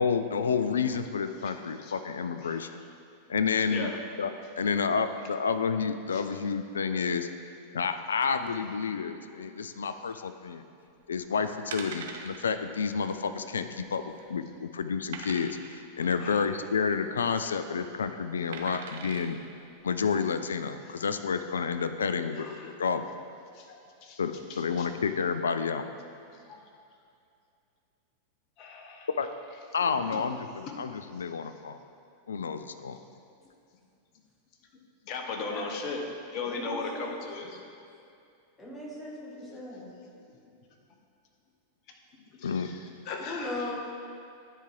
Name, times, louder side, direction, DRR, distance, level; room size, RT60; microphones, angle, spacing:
voice 1, 0.0-2.8 3.3-3.9 4.2-4.3 4.6-7.3 7.7-10.6 11.1-19.4 19.8-22.5 22.8-23.0 24.2-25.9 29.2-29.3 29.7-31.8 32.3-33.0 42.4-42.7, left 5 dB, 70° left, 10 dB, 0.3 m, -30 dB
voice 2, 2.4-2.7 3.7-4.0 6.1-6.3 16.0-16.4 20.8-20.9 22.4-22.8 23.5-24.2 24.5-24.9 26.3-26.6 28.6-29.1 29.8-30.3 32.8-33.0 35.0-37.6 39.4-39.8 42.1-43.7, left 4 dB, 40° left, 2 dB, 0.9 m, -38 dB
sound 1, 11.0-11.2 11.7-12.4 12.8-12.9 13.2-13.3 13.9-14.3 15.1-15.8 17.1-17.5 18.5-19.3 19.9-20.0, right 5 dB, 60° right, 0.5 m, -41 dB
voice 3, 36.4-37.1 38.6-40.0 43.3-43.7, left 1 dB, 10° left, -5 dB, 1.5 m, -38 dB
9.9 x 4.4 x 3.7 m, 2.5 s
figure-of-eight pair, 90°, 0 cm